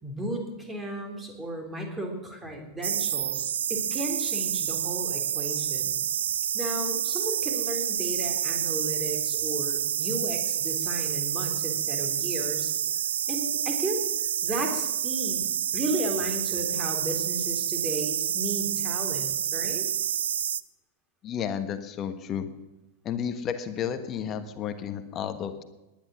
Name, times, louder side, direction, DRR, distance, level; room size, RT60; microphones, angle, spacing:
voice 1, 0.0-6.0 6.5-12.7 13.3-14.1 14.4-15.5 15.7-19.9, right 1 dB, 15° right, 3 dB, 3.7 m, -34 dB
sound 1, 2.8-20.6, right 9 dB, 65° right, 0.5 m, -28 dB
voice 2, 21.2-22.5 23.0-25.6, left 8 dB, 30° left, 10 dB, 1.3 m, -32 dB
19.0 x 10.5 x 6.3 m, 1.1 s
figure-of-eight pair, 90°, 0 cm